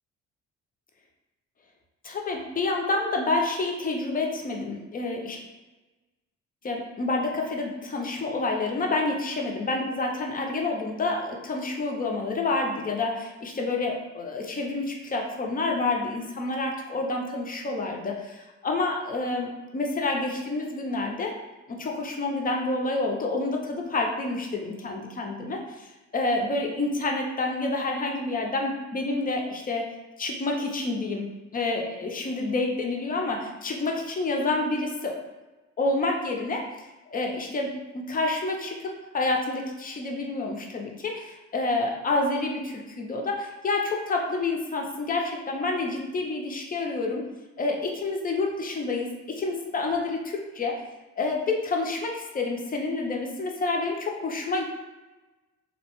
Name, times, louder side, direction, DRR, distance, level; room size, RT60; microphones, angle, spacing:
voice 1, 2.0-5.4 6.6-21.4 21.7-29.9 30.2-31.3 31.5-35.2 35.8-36.7 37.1-47.3 47.6-50.8 51.2-54.6, left 3 dB, 30° left, 1 dB, 0.5 m, -28 dB
2.7 x 2.0 x 2.9 m, 1.1 s
cardioid pair, 90°, 30 cm